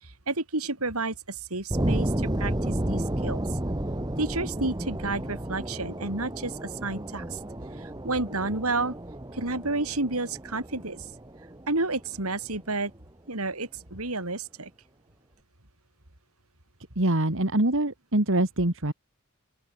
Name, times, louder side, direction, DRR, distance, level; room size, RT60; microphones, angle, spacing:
voice 1, 0.0-3.4 4.2-7.4 7.8-8.9 9.3-11.1 11.7-12.9 13.3-14.7, right 2 dB, 80° right, 5.2 m, -31 dB
sound 1, 1.7-12.5, right 1 dB, 20° right, 1.6 m, -32 dB
voice 2, 17.0-18.9, right 1 dB, 65° right, 3.0 m, -24 dB
open air
head